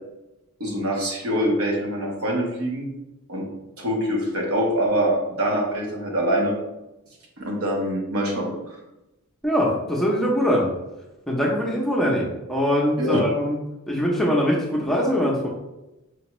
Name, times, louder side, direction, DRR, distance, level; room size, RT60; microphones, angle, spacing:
voice 1, 0.6-2.9 3.3-3.5 3.8-6.6 7.4-8.8 13.0-13.2, equal, 65° right, 0 dB, 0.9 m, -24 dB
voice 2, 9.4-10.7 11.3-13.6 13.9-15.5, equal, ahead, -4 dB, 0.6 m, -22 dB
5.1 x 2.3 x 3.0 m, 0.97 s
head